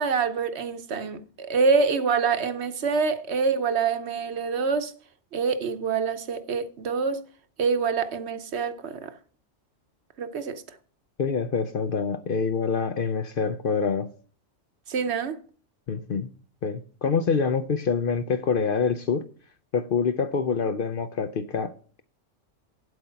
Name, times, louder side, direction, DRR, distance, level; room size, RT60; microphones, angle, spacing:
voice 1, 0.0-4.9 5.3-7.2 7.6-9.1 10.2-10.6 14.9-15.4, right 5 dB, 60° right, 1.0 m, -26 dB
voice 2, 11.2-14.1 15.9-16.3 16.6-19.2 19.7-22.0, left 5 dB, 55° left, 0.7 m, -26 dB
9.1 x 7.9 x 5.6 m
omnidirectional pair, 1.3 m